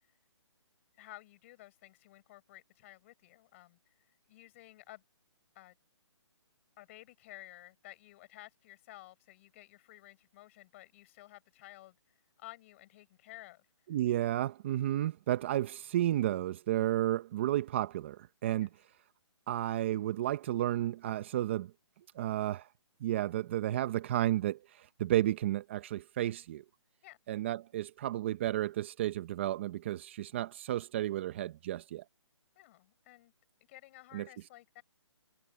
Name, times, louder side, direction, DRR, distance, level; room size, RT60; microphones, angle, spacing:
voice 1, 1.0-3.8 4.3-5.0 5.5-5.8 6.8-13.7 18.6-18.7 27.0-27.2 32.5-33.3 33.7-34.8, left 17 dB, 25° left, 6.6 m, -54 dB
voice 2, 13.9-18.7 19.5-21.7 22.1-22.7 23.0-26.6 27.3-32.0 34.1-34.3, right 13 dB, 25° right, 0.7 m, -32 dB
hypercardioid pair, 165°, 16 cm